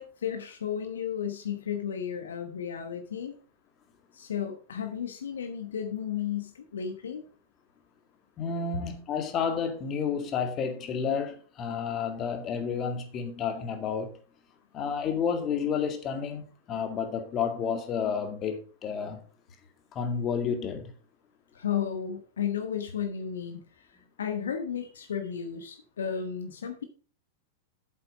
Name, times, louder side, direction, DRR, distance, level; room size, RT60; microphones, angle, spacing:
voice 1, 0.0-3.3 4.1-7.3 21.5-26.8, left 8 dB, 70° left, 1.2 m, -33 dB
voice 2, 8.4-14.1 14.7-19.2 19.9-20.9, left 6 dB, 30° left, 2.0 m, -31 dB
8.1 x 7.7 x 5.0 m
figure-of-eight pair, 95°, 0 cm